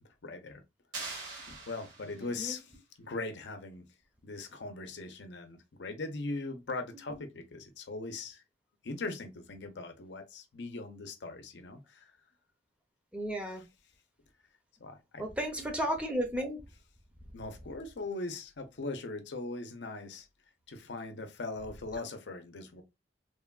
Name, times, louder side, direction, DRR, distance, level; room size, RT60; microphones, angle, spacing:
voice 1, 0.2-0.6 1.5-2.7 3.0-3.8 4.2-8.4 8.8-12.1 14.8-15.2 17.3-20.3 20.7-22.8, left 3 dB, 80° left, 0.6 m, -40 dB
sound 1, 0.9-2.4, right 3 dB, 85° right, 1.6 m, -43 dB
voice 2, 2.2-2.6 13.1-13.6 15.2-16.6, equal, 5° right, 0.6 m, -34 dB
3.3 x 2.2 x 2.3 m
head